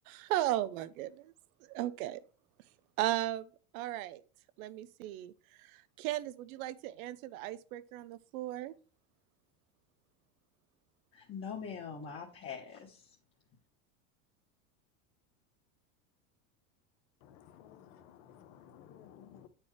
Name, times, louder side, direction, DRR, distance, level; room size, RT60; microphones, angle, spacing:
voice 1, 0.1-1.3 1.6-2.2 3.0-3.5 3.7-4.2 4.6-5.3 5.6-8.7, right 14 dB, 70° right, 0.6 m, -36 dB
voice 2, 11.1-13.1, left 6 dB, 30° left, 1.2 m, -43 dB
voice 3, 17.2-19.5, left 9 dB, 65° left, 1.0 m, -56 dB
8.2 x 4.5 x 3.2 m
supercardioid pair, 115°, 43 cm